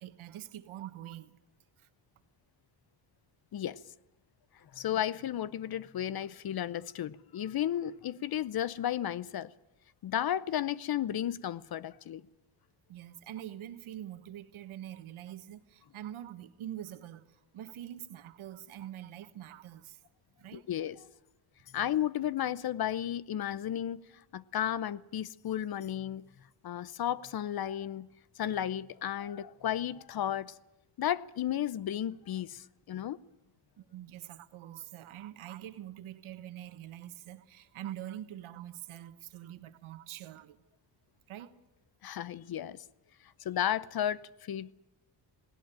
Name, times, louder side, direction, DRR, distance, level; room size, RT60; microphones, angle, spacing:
voice 1, 0.0-1.4 1.8-1.9 12.9-20.0 20.4-20.7 33.8-40.6 41.3-41.6, right 12 dB, 80° right, 1.4 m, -45 dB
voice 2, 4.7-9.5 10.0-12.2 20.5-21.0 21.7-24.0 24.3-26.2 26.6-28.1 28.4-30.5 31.0-33.2 42.0-42.8 43.4-44.7, left 11 dB, 50° left, 0.7 m, -33 dB
19.0 x 18.5 x 9.0 m
cardioid pair, 110°, 48 cm